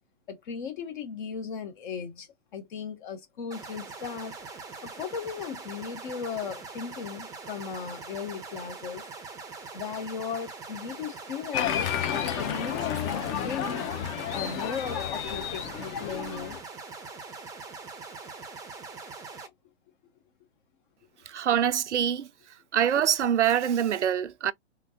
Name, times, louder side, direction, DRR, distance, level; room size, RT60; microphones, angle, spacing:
voice 1, 0.3-2.3 2.5-4.3 4.8-9.0 9.7-11.8 12.4-13.8 14.3-16.6, left 6 dB, 45° left, 1.2 m, -36 dB
sound 1, 3.5-19.5, right 4 dB, 10° right, 0.6 m, -42 dB
Applause, 11.5-16.6, left 9 dB, 30° left, 0.7 m, -31 dB
voice 2, 21.3-22.3 22.7-24.5, right 9 dB, 75° right, 0.5 m, -25 dB
3.5 x 2.6 x 2.9 m
figure-of-eight pair, 115°, 35 cm